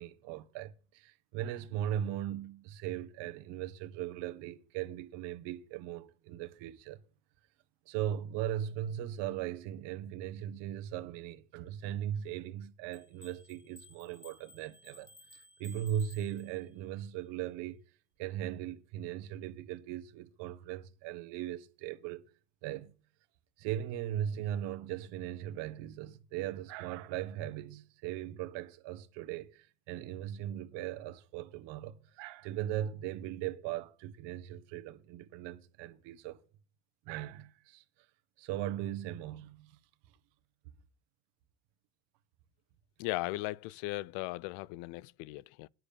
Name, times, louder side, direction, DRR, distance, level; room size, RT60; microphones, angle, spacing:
voice 1, 0.0-7.0 7.9-17.8 18.2-22.2 22.6-22.9 23.6-36.4 37.0-37.8 38.4-39.8, right 11 dB, 70° right, 1.7 m, -38 dB
sound 1, 12.9-16.9, left 2 dB, 10° left, 1.3 m, -57 dB
voice 2, 43.0-45.7, left 19 dB, 75° left, 0.6 m, -37 dB
9.8 x 7.9 x 6.8 m
cardioid pair, 125°, 43 cm